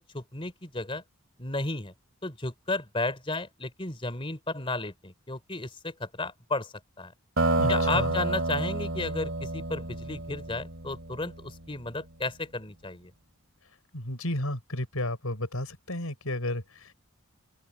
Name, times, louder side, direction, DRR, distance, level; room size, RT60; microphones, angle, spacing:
voice 1, 0.1-1.0 1.4-1.9 2.2-7.1 7.7-13.1, left 2 dB, 25° left, 3.1 m, -33 dB
sound 1, 7.4-11.7, right 2 dB, 60° right, 3.4 m, -29 dB
voice 2, 7.6-8.1 13.9-16.9, left 1 dB, 85° left, 6.4 m, -32 dB
head